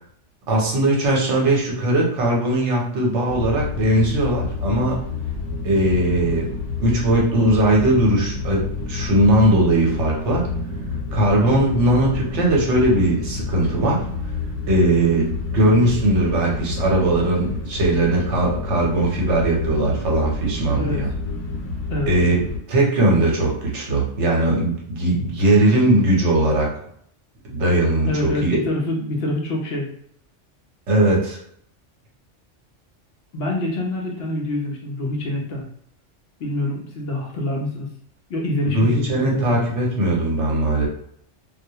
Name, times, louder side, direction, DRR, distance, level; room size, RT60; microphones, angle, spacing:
voice 1, 0.5-5.0 5.6-6.5 6.8-10.4 11.1-14.0 14.7-21.1 22.1-22.4 22.7-26.7 27.4-28.6 30.9-31.4 38.7-40.9, right 1 dB, 70° right, -1 dB, 1.0 m, -19 dB
sound 1, 3.3-22.6, left 4 dB, 80° left, 1.0 m, -29 dB
voice 2, 28.1-29.9 33.3-35.7 36.4-37.9 38.3-39.5, left 1 dB, 65° left, -1 dB, 0.7 m, -26 dB
2.3 x 2.1 x 2.7 m, 0.67 s
omnidirectional pair, 1.3 m